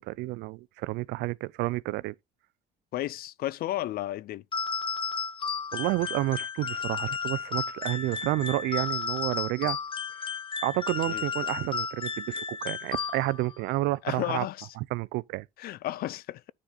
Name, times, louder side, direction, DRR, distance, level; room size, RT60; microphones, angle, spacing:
voice 1, 0.0-2.1 5.7-9.8 10.6-14.5 14.8-15.5, right 19 dB, 90° right, 0.5 m, -30 dB
voice 2, 2.9-4.4 11.1-11.2 14.0-14.7 15.6-16.4, left 14 dB, 65° left, 0.5 m, -33 dB
sound 1, 4.5-13.6, left 5 dB, 30° left, 0.7 m, -33 dB
9.9 x 3.9 x 4.3 m
cardioid pair, 110°, 17 cm